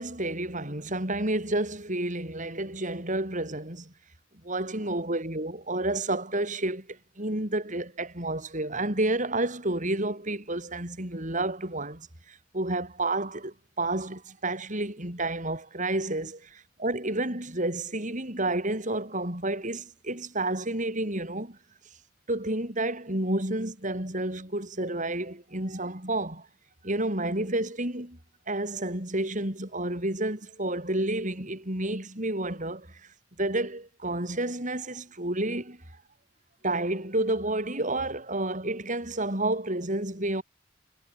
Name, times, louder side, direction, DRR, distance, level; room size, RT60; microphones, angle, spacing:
voice 1, 0.0-3.9 4.4-21.6 22.3-26.5 26.8-28.2 28.5-33.0 33.4-35.8 36.6-40.4, right 2 dB, 40° right, 7.6 m, -30 dB
head